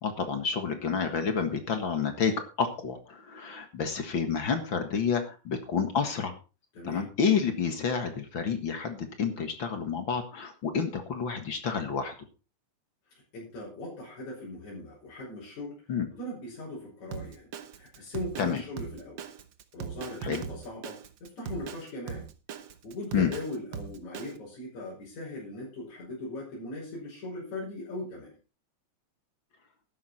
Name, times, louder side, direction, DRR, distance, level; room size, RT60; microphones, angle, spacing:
voice 1, 0.0-6.4 6.8-12.1 15.9-16.1 18.4-18.6 20.2-20.4 23.1-23.3, left 6 dB, 45° left, 7 dB, 1.9 m, -29 dB
voice 2, 6.7-7.1 13.3-15.8 16.1-19.2 19.7-22.3 22.8-28.4, left 1 dB, 65° left, -5 dB, 7.2 m, -39 dB
Drum kit, 17.1-24.4, right 8 dB, 75° right, 1.0 m, -40 dB
13.0 x 11.0 x 4.3 m, 0.32 s
omnidirectional pair, 3.6 m